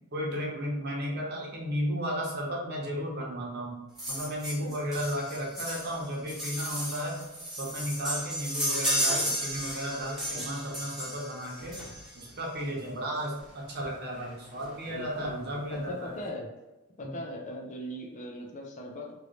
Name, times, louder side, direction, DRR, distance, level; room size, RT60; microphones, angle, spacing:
voice 1, 0.1-3.8 4.1-7.2 7.6-11.7 12.2-16.1 17.0-17.2, equal, 50° right, -3 dB, 0.9 m, -34 dB
sound 1, 4.0-12.3 13.4-13.5 13.8-13.9 14.1-14.3 14.6-15.2 15.7-15.8, equal, ahead, 0.9 m, -34 dB
voice 2, 4.6-5.0 10.3-10.8 14.9-16.5 17.0-19.1, equal, 35° left, -1 dB, 0.5 m, -40 dB
3.0 x 2.6 x 3.1 m, 1.1 s
head